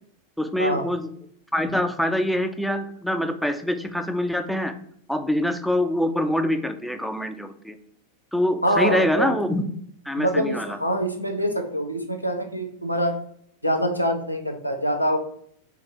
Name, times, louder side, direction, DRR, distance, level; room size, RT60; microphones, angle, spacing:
voice 1, 0.4-1.1 1.5-4.7 5.1-7.8 8.3-9.7 10.1-10.8, left 1 dB, ahead, 7 dB, 0.6 m, -25 dB
voice 2, 8.6-9.4 10.2-13.1 13.6-15.2, equal, 90° left, 3 dB, 0.9 m, -24 dB
4.7 x 4.2 x 4.8 m, 0.66 s
figure-of-eight pair, 90°, 0 cm